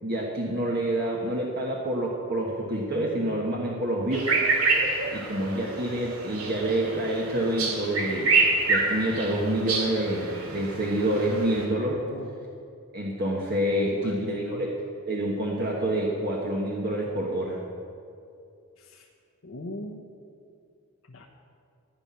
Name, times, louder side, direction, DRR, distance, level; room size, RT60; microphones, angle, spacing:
voice 1, 0.0-4.3 5.1-8.3 8.7-12.0 12.9-14.7 15.1-17.6, right 1 dB, 45° right, -3 dB, 1.4 m, -27 dB
sound 1, 4.1-11.6, right 3 dB, 80° right, 2.4 m, -27 dB
voice 2, 13.9-14.6 18.8-19.1 19.4-20.0 21.1-21.3, left 1 dB, 65° left, -1 dB, 1.0 m, -40 dB
15.0 x 6.0 x 9.7 m, 2.5 s
head